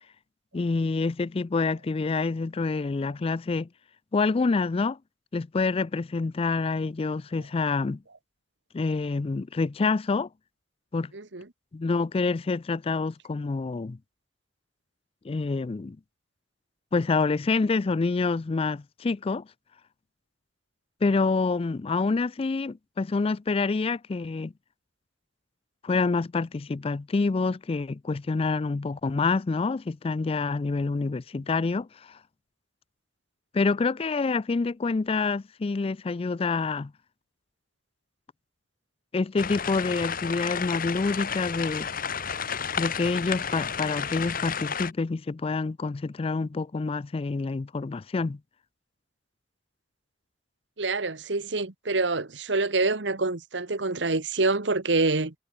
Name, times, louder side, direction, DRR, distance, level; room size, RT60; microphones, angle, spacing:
voice 1, 0.5-3.7 4.1-5.0 5.3-8.0 8.7-10.3 10.9-11.1 11.7-14.0 15.2-16.0 16.9-19.5 21.0-24.5 25.8-32.2 33.5-36.9 39.1-41.9 42.8-48.4, left 4 dB, 30° left, 0.4 m, -27 dB
voice 2, 11.1-11.4 50.8-55.3, right 3 dB, 75° right, 1.6 m, -26 dB
sound 1, 39.4-44.9, left 7 dB, 50° left, 2.1 m, -31 dB
head